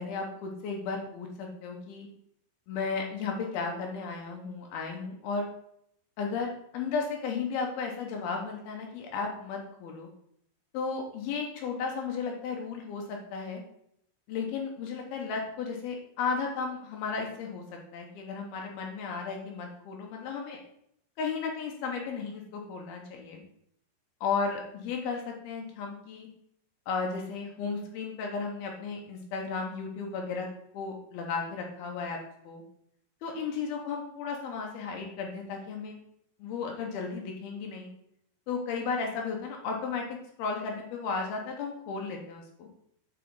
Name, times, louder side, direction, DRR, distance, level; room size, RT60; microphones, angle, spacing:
voice 1, 0.0-2.1 2.7-5.5 6.2-10.1 10.7-13.6 14.3-17.6 17.9-20.6 21.2-23.4 24.2-26.3 26.9-30.5 30.7-32.2 32.4-32.6 33.2-36.0 36.4-37.9 38.5-40.1 40.4-42.7, left 5 dB, 75° left, 1 dB, 2.8 m, -34 dB
7.2 x 5.0 x 4.7 m, 0.72 s
omnidirectional pair, 4.6 m